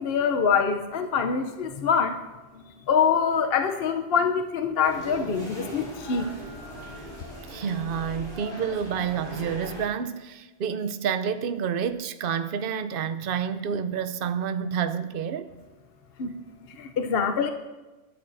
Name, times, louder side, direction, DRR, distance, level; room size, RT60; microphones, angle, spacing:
voice 1, 0.0-2.2 2.5-6.3 16.2-16.3 16.8-17.5, left 6 dB, 60° left, 0.8 m, -25 dB
sound 1, 4.8-9.8, equal, 25° left, 4.3 m, -39 dB
voice 2, 7.5-15.5, right 7 dB, 55° right, 0.8 m, -29 dB
20.0 x 13.0 x 2.6 m
omnidirectional pair, 1.3 m